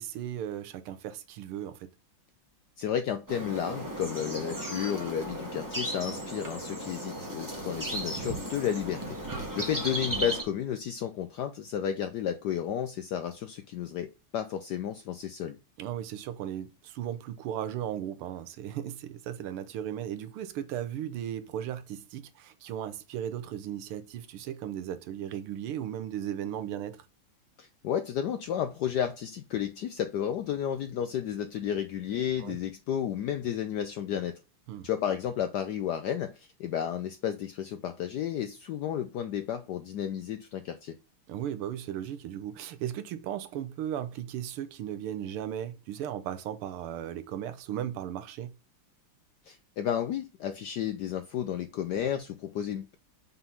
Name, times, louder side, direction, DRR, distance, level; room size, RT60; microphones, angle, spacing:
voice 1, 0.0-1.9 6.0-6.2 9.3-9.5 15.8-27.1 32.4-32.6 34.7-34.9 41.3-48.6, right 10 dB, 85° right, 1.6 m, -36 dB
voice 2, 2.8-9.2 9.6-15.6 27.6-34.4 34.8-41.0 49.4-53.0, left 9 dB, 75° left, 0.9 m, -32 dB
sound 1, 3.3-10.4, right 1 dB, 10° right, 1.2 m, -35 dB
5.9 x 3.8 x 5.5 m
omnidirectional pair, 2.4 m